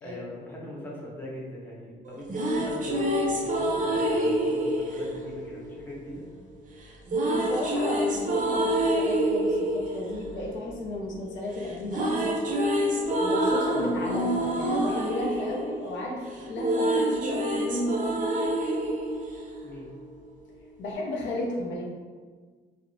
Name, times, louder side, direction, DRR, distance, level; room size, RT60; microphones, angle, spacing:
voice 1, 0.0-6.2 13.7-13.9 19.6-19.9, equal, 10° left, -5 dB, 0.7 m, -41 dB
sound 1, 2.1-6.2 7.1-11.3 11.6-20.1, right 1 dB, 40° right, 0.5 m, -27 dB
voice 2, 7.3-12.4 13.2-18.5 20.8-21.8, left 1 dB, 70° left, -2 dB, 0.6 m, -33 dB
2.7 x 2.0 x 2.6 m, 1.5 s
cardioid pair, 90°, 20 cm